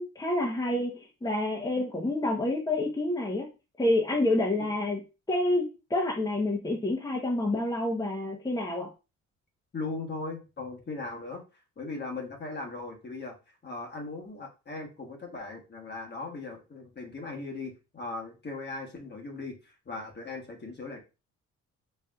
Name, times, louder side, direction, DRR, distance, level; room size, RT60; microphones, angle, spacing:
voice 1, 0.0-3.5 3.8-5.0 5.3-8.9, left 1 dB, 15° left, 0 dB, 1.0 m, -28 dB
voice 2, 9.7-11.4 11.8-13.4 13.6-21.0, left 3 dB, 35° left, 1 dB, 1.3 m, -38 dB
4.3 x 3.3 x 2.4 m, 0.29 s
cardioid pair, 90°, 30 cm